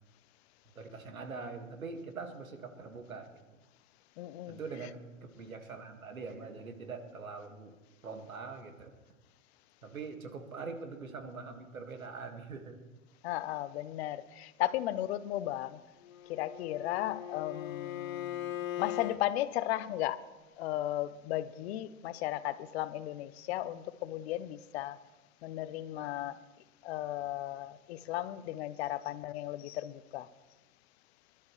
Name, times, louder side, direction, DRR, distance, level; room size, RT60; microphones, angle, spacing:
voice 1, 0.8-3.4 4.5-5.1 5.3-7.8 8.0-9.0 9.8-12.8, right 4 dB, 90° right, 2.1 m, -43 dB
voice 2, 4.2-4.6 13.2-15.8 16.3-20.3 20.6-25.0 25.4-26.4 26.8-30.3, left 14 dB, 50° left, 0.8 m, -35 dB
Bowed string instrument, 16.0-19.2, left 12 dB, 80° left, 1.1 m, -39 dB
25.5 x 12.0 x 3.3 m
hypercardioid pair, 110°, 40 cm